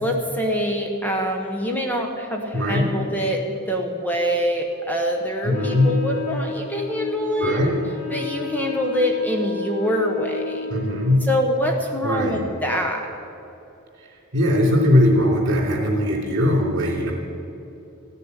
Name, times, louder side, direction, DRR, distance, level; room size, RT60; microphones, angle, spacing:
voice 1, 0.0-7.6 8.1-10.7 11.2-13.1, equal, 10° left, 2 dB, 1.0 m, -25 dB
voice 2, 2.5-2.9 5.4-5.9 7.4-7.7 10.7-11.2 12.0-12.4 14.3-17.1, left 1 dB, 55° right, 0 dB, 3.3 m, -20 dB
Wind instrument woodwind instrument, 5.5-11.4, left 5 dB, 85° left, 1.8 m, -33 dB
15.5 x 6.7 x 9.8 m, 3.0 s
head